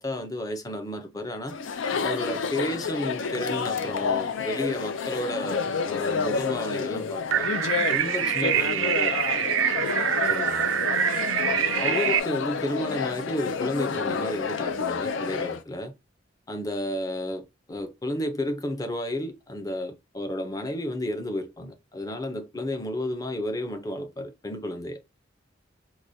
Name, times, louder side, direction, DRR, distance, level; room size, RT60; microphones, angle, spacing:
voice 1, 0.0-1.5 2.0-7.5 7.9-9.3 10.3-10.8 11.8-15.9 16.5-25.0, left 1 dB, 20° left, 0.6 m, -32 dB
Chatter, 1.5-15.6, left 5 dB, 80° left, 0.5 m, -29 dB
sound 1, 7.3-12.2, right 9 dB, 85° right, 0.4 m, -25 dB
voice 2, 9.8-10.5 10.8-11.3, left 1 dB, 60° left, 1.4 m, -44 dB
4.6 x 2.2 x 2.7 m
head